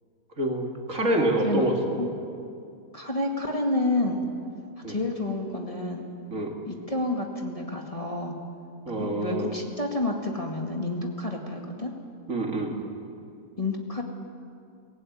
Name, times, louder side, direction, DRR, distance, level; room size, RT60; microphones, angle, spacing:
voice 1, 0.4-2.0 4.8-5.0 6.3-6.5 8.9-9.5 12.3-12.8, right 1 dB, 55° right, 2 dB, 2.6 m, -26 dB
voice 2, 2.9-4.2 4.9-6.0 6.7-8.3 9.0-11.9 13.6-14.0, left 2 dB, 20° left, 1 dB, 2.1 m, -29 dB
23.5 x 17.5 x 9.4 m, 2.5 s
omnidirectional pair, 1.7 m